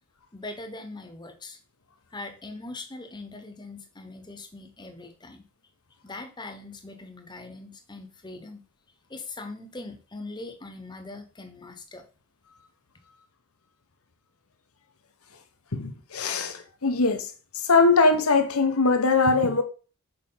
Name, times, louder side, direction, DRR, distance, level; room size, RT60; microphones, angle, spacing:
voice 1, 0.3-1.6 2.1-5.5 6.0-8.7 9.1-12.0, left 2 dB, 20° left, 1.0 m, -41 dB
voice 2, 15.7-19.6, left 3 dB, 80° left, 1.1 m, -22 dB
6.8 x 4.8 x 5.6 m
head